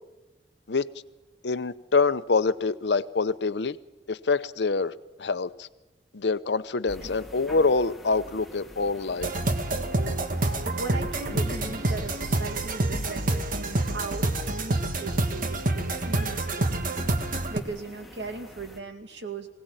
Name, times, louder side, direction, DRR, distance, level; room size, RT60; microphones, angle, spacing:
voice 1, 1.4-3.8 4.1-4.9 5.2-5.7 6.1-9.3, left 4 dB, 75° left, 14 dB, 0.8 m, -25 dB
sound 1, 6.9-18.8, equal, ahead, 1.8 m, -45 dB
sound 2, 9.2-17.6, right 2 dB, 50° right, 1.5 m, -27 dB
voice 2, 10.5-16.9 17.5-19.5, right 3 dB, 80° right, 6 dB, 2.4 m, -38 dB
21.5 x 17.5 x 9.0 m, 1.1 s
head